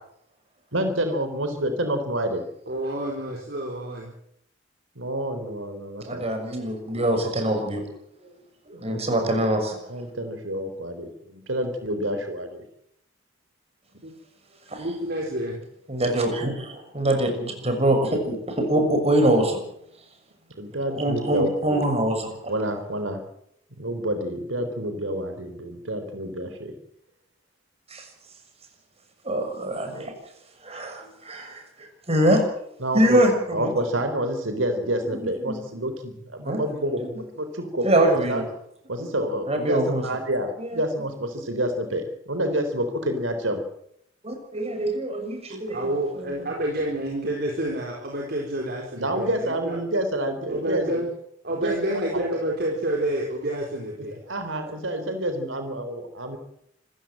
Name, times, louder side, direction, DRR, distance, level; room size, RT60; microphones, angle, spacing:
voice 1, 0.7-2.5 5.0-6.3 8.7-9.3 9.9-12.6 20.6-21.8 22.5-23.2 23.8-26.7 32.8-33.2 33.5-38.4 38.9-43.6 45.5-45.6 49.0-51.1 51.6-51.7 52.1-52.2 54.1-56.4, right 1 dB, 90° right, 8 dB, 3.9 m, -28 dB
voice 2, 2.7-4.1 14.0-14.1 14.8-15.6 45.7-49.8 50.5-51.1 51.4-54.2, right 1 dB, 55° right, 0 dB, 4.4 m, -29 dB
voice 3, 6.0-7.8 8.2-8.3 8.6-9.8 14.7-14.9 15.9-19.6 20.9-22.5 27.9-28.1 29.2-30.1 30.6-32.4 32.9-33.3 33.6-33.7 35.2-35.6 36.4-36.6 37.0-37.1 37.8-38.4 39.5-40.0 40.6-40.8 44.2-45.9 46.2-46.3, right 1 dB, 35° right, 5 dB, 6.3 m, -24 dB
26.5 x 15.5 x 7.9 m, 0.72 s
head